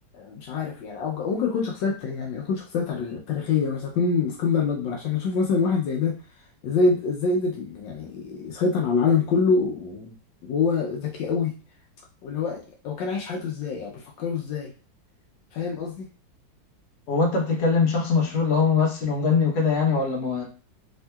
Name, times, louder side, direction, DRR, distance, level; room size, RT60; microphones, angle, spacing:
voice 1, 0.1-6.1 6.6-10.2 10.4-11.5 12.2-14.7 15.5-16.1, left 4 dB, 75° left, -1 dB, 1.3 m, -25 dB
voice 2, 17.1-20.4, left 5 dB, 55° left, -2 dB, 1.2 m, -22 dB
3.6 x 2.7 x 2.2 m, 0.36 s
omnidirectional pair, 2.1 m